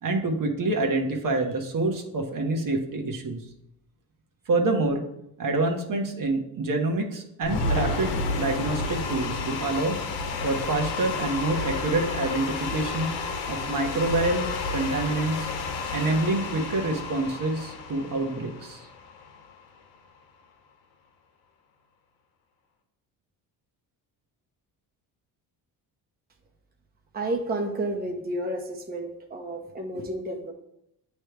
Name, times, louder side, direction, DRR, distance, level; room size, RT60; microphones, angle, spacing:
voice 1, 0.0-3.4 4.5-5.0 5.4-10.0 10.4-13.1 13.5-15.5 15.9-18.9, right 2 dB, 50° right, 3 dB, 1.2 m, -27 dB
sound 1, 7.4-19.6, left 3 dB, 85° left, 0.9 m, -31 dB
voice 2, 27.1-30.5, right 1 dB, 20° right, 2 dB, 0.9 m, -31 dB
8.8 x 3.2 x 3.3 m, 0.79 s
supercardioid pair, 65°, 43 cm